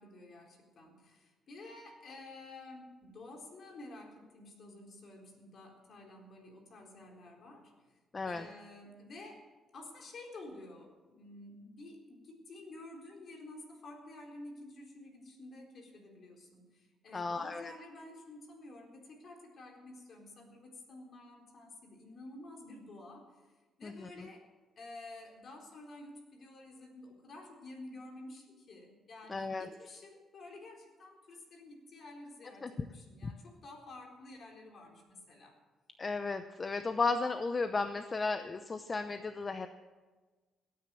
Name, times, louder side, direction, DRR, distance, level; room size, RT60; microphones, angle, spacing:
voice 1, 0.0-7.9 8.2-24.5 24.8-35.6, left 2 dB, 55° left, 1 dB, 4.0 m, -51 dB
voice 2, 8.1-8.5 17.1-17.7 23.8-24.1 29.3-29.7 32.6-32.9 33.2-33.3 36.0-39.7, left 3 dB, 30° left, 10 dB, 0.7 m, -34 dB
17.0 x 9.4 x 7.7 m, 1.3 s
cardioid pair, 90°, 0 cm